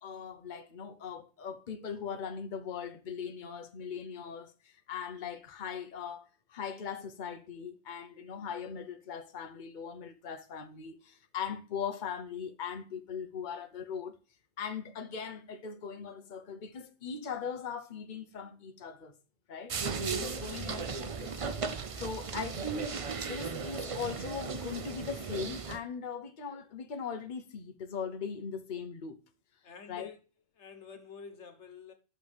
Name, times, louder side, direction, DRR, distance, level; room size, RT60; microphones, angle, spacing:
voice 1, 0.0-14.2 14.6-19.1 19.5-19.8 20.1-21.4 22.0-29.2 29.9-30.1, left 6 dB, 45° left, 1.0 m, -40 dB
sound 1, 19.7-25.8, right 5 dB, 35° right, 0.6 m, -36 dB
voice 2, 29.6-30.2 30.5-31.9, left 6 dB, 85° left, 1.5 m, -48 dB
11.5 x 6.5 x 3.5 m
omnidirectional pair, 1.1 m